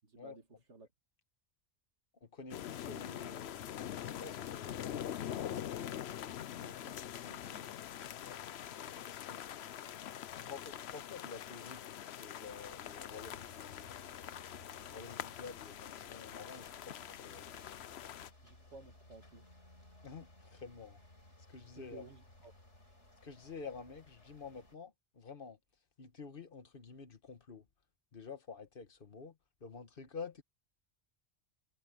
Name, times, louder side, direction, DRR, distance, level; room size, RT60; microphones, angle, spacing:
voice 1, 0.0-0.4 0.7-0.9 6.6-7.8 10.4-10.5 18.4-19.5 21.7-22.5, right 4 dB, 80° right, 2.5 m, -56 dB
voice 2, 2.2-5.7 8.2-8.4 8.8-9.5 10.3-14.0 14.9-17.5 20.0-21.0 21.5-22.1 23.2-25.6 26.0-27.6 28.1-30.4, left 5 dB, 50° left, 1.5 m, -50 dB
sound 1, 2.5-18.3, left 10 dB, 70° left, 0.9 m, -44 dB
sound 2, 12.4-24.8, left 1 dB, 90° left, 4.8 m, -60 dB
omnidirectional pair, 1.2 m